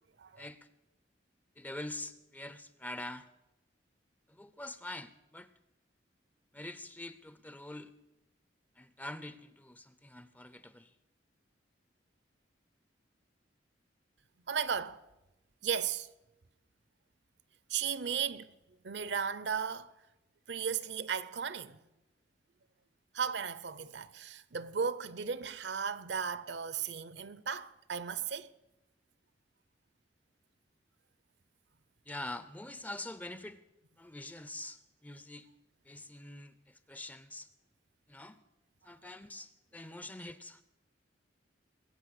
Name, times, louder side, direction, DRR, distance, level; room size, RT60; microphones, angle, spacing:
voice 1, 0.4-0.7 1.6-3.3 4.3-5.5 6.5-7.9 8.8-10.9 32.1-33.6 34.0-35.5 35.8-37.5 38.1-38.4 38.8-40.6, left 1 dB, 10° left, 0.5 m, -45 dB
voice 2, 14.5-15.0 15.6-16.1 17.7-18.5 18.8-19.9 20.5-21.8 23.1-28.5, right 7 dB, 65° right, 0.7 m, -35 dB
20.5 x 8.6 x 6.5 m
head